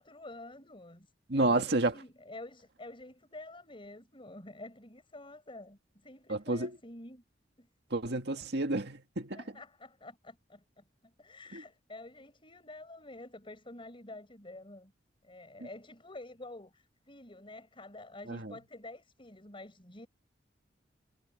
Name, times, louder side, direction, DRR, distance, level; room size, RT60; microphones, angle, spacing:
voice 1, 0.0-7.2 7.6-7.7 9.4-14.9 15.2-20.1, left 2 dB, 30° left, 5.2 m, -49 dB
voice 2, 1.3-1.9 6.3-6.8 7.9-9.4 11.5-11.6 18.3-18.5, right 2 dB, 65° right, 2.0 m, -30 dB
head